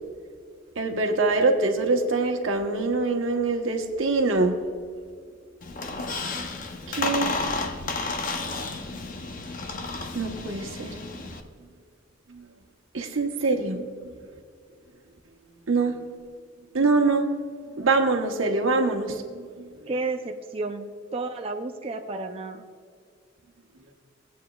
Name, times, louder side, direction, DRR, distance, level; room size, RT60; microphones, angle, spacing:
voice 1, 0.8-4.6 6.9-7.4 10.1-10.9 12.3-12.4 12.9-14.1 15.7-15.9 16.7-17.3 17.8-19.7, right 3 dB, 85° right, 3 dB, 1.1 m, -24 dB
Squeak, 5.6-11.4, left 3 dB, 45° left, 0.8 m, -32 dB
voice 2, 19.9-20.9 21.1-22.6, right 3 dB, 30° right, 4 dB, 0.5 m, -31 dB
17.5 x 8.4 x 2.4 m, 2.1 s
head